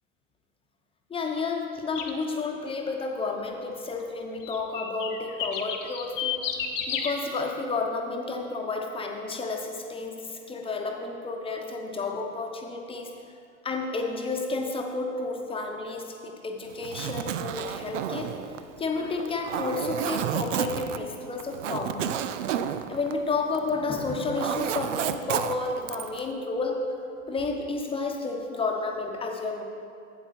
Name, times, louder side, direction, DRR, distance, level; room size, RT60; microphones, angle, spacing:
voice 1, 1.1-6.4 6.9-13.1 13.6-18.3 18.8-22.2 22.9-26.9 27.3-29.6, left 3 dB, 15° left, 2 dB, 0.9 m, -31 dB
sound 1, 1.9-2.2 4.4-7.1, left 8 dB, 70° left, 1.1 m, -31 dB
Zipper (clothing), 16.7-23.8 24.1-26.2, right 10 dB, 70° right, 0.6 m, -31 dB
8.1 x 8.1 x 4.3 m, 2.3 s
hypercardioid pair, 105°, 39 cm